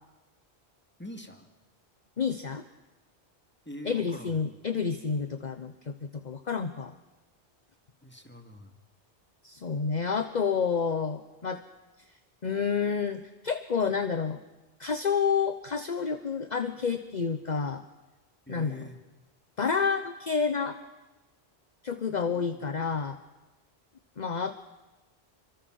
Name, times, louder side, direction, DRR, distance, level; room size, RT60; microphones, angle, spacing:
voice 1, 1.0-1.5 3.7-4.4 8.0-8.7 18.5-19.0 22.1-23.0, equal, 10° left, 5 dB, 2.2 m, -45 dB
voice 2, 2.2-2.6 3.9-6.9 9.4-11.6 12.4-14.4 14.8-17.8 18.5-18.8 19.6-20.8 21.8-23.2 24.2-24.5, left 6 dB, 45° left, 9 dB, 1.0 m, -29 dB
27.0 x 24.5 x 6.4 m, 1.1 s
omnidirectional pair, 1.1 m